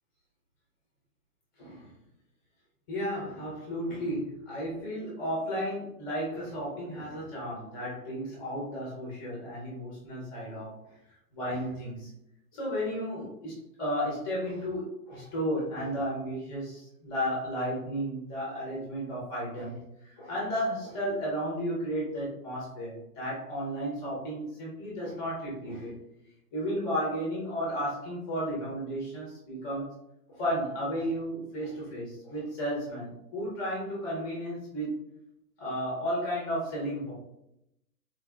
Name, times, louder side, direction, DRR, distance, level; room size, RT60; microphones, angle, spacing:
voice 1, 1.6-1.9 2.9-10.7 11.3-12.1 12.5-19.8 20.0-26.0 26.5-29.9 30.3-34.9 35.6-37.1, equal, 10° left, -5 dB, 0.5 m, -33 dB
3.8 x 2.6 x 2.3 m, 0.82 s
hypercardioid pair, 145°, 47 cm